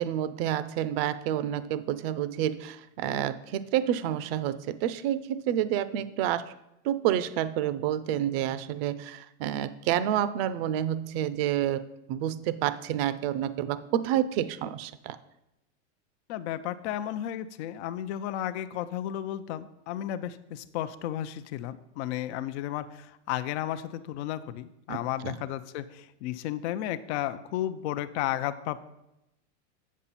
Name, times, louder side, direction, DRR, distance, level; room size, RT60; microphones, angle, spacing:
voice 1, 0.0-6.5 6.8-11.8 12.1-15.2 24.9-25.3, right 11 dB, 50° right, 15 dB, 0.6 m, -29 dB
voice 2, 16.3-28.8, left 12 dB, 60° left, 11 dB, 0.6 m, -33 dB
7.9 x 7.3 x 4.2 m, 0.88 s
supercardioid pair, 140°, 38 cm